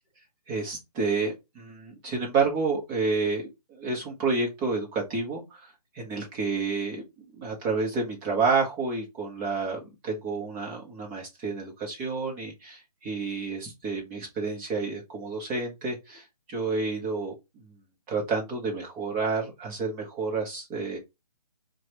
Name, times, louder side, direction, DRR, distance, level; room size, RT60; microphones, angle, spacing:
voice 1, 0.5-5.6 5.9-7.0 7.3-17.3 18.1-21.0, right 4 dB, 10° right, 0.8 m, -29 dB
4.6 x 2.2 x 2.9 m
hypercardioid pair, 160°, 20 cm